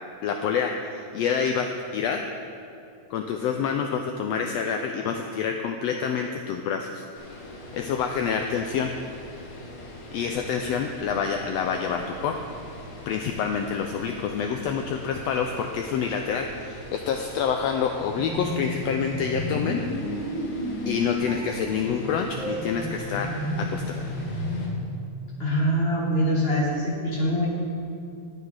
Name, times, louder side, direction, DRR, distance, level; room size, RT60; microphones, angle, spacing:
voice 1, 0.2-2.3 3.1-7.1 7.7-8.9 10.1-12.4 13.1-20.2 20.9-24.1, left 6 dB, 90° left, 4 dB, 1.4 m, -27 dB
sound 1, 7.2-24.7, left 1 dB, 50° left, 2.1 m, -43 dB
sound 2, 18.0-24.9, left 1 dB, 25° left, 2.5 m, -32 dB
voice 2, 25.4-27.5, equal, 70° left, -4 dB, 0.5 m, -24 dB
9.7 x 9.4 x 4.8 m, 2.6 s
omnidirectional pair, 3.4 m